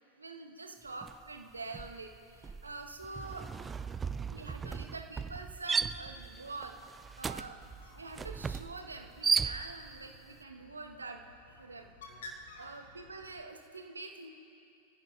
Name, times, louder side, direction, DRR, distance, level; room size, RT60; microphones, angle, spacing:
voice 1, 0.1-3.7 4.3-6.8 7.2-7.6 7.9-11.2 11.5-11.9 12.6-14.3, right 3 dB, 75° right, 5 dB, 1.1 m, -45 dB
sound 1, 1.0-1.3 1.6-10.0, right 5 dB, 15° right, 0.3 m, -36 dB
Bird, 7.3-13.4, left 2 dB, 60° left, 1.8 m, -54 dB
27.0 x 15.0 x 2.5 m, 2.7 s
figure-of-eight pair, 90°, 0 cm